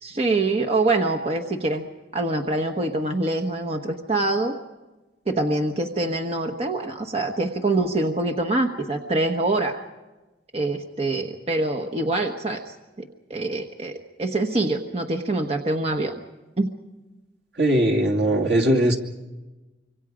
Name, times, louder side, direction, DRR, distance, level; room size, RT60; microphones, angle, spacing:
voice 1, 0.0-1.9 2.1-4.5 5.3-9.8 10.5-16.1 16.6-16.7, right 2 dB, 35° right, 4 dB, 1.2 m, -25 dB
voice 2, 17.6-19.0, right 1 dB, 75° right, 0 dB, 2.7 m, -20 dB
26.0 x 25.0 x 5.1 m, 1.1 s
head